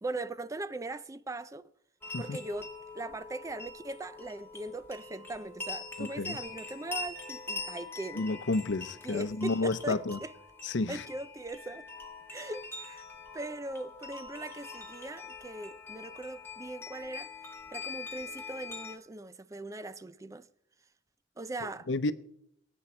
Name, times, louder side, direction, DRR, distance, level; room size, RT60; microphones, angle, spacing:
voice 1, 0.0-1.6 2.2-8.3 9.0-10.3 10.9-11.8 12.3-13.0 13.3-20.5 21.4-21.9, right 2 dB, 15° right, 0.4 m, -40 dB
sound 1, 2.0-19.0, left 3 dB, 10° left, 1.5 m, -44 dB
voice 2, 6.0-6.4 8.1-10.2 10.6-11.0 21.9-22.1, left 3 dB, 80° left, 0.7 m, -31 dB
23.0 x 8.9 x 4.4 m
head